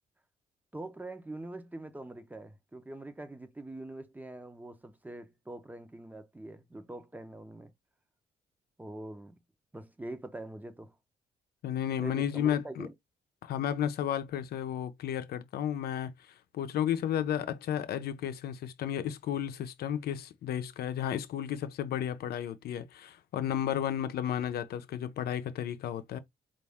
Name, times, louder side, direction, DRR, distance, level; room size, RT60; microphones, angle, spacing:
voice 1, 0.7-7.7 8.8-9.4 9.7-10.9 12.0-12.9, right 2 dB, 10° right, 0.8 m, -44 dB
voice 2, 11.6-12.9 13.4-16.1 16.5-26.2, left 10 dB, 75° left, 0.7 m, -33 dB
4.2 x 2.6 x 3.5 m
cardioid pair, 105°, 16 cm